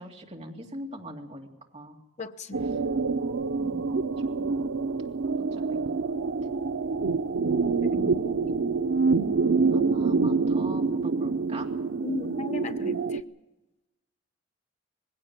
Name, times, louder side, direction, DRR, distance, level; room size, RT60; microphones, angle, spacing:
voice 1, 0.0-2.0 3.5-3.9 4.2-4.6 5.4-6.0 7.9-8.5 9.7-11.7, right 1 dB, 30° right, 1 dB, 2.4 m, -42 dB
voice 2, 2.2-2.7 7.7-8.2 12.0-13.2, left 2 dB, 35° left, 7 dB, 0.9 m, -35 dB
creepy ambience, 2.5-13.2, right 4 dB, 80° right, 0.6 m, -26 dB
20.0 x 16.5 x 8.7 m, 1.1 s
head